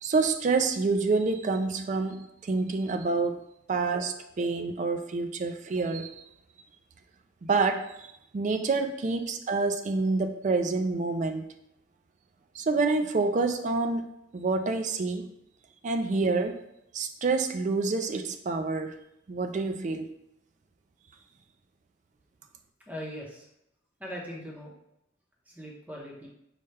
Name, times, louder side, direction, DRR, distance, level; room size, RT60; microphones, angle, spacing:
voice 1, 0.0-3.4 3.7-6.2 7.4-8.1 8.3-11.4 12.5-14.1 14.3-15.3 15.8-16.6 16.9-19.0 19.3-20.1, right 3 dB, 40° right, 7 dB, 0.3 m, -27 dB
voice 2, 22.9-23.5 24.0-24.7 25.5-26.3, equal, 10° right, -3 dB, 0.8 m, -40 dB
5.5 x 2.2 x 3.3 m, 0.80 s
head